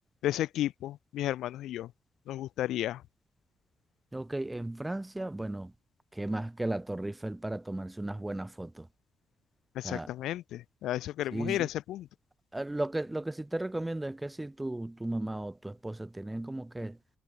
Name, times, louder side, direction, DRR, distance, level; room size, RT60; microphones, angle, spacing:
voice 1, 0.2-1.9 2.3-3.0 9.7-12.1, left 13 dB, 85° left, 1.3 m, -33 dB
voice 2, 4.1-5.7 6.1-8.9 9.8-10.1 11.3-11.7 12.5-17.0, right 1 dB, 10° right, 1.9 m, -35 dB
cardioid pair, 90°, 0 cm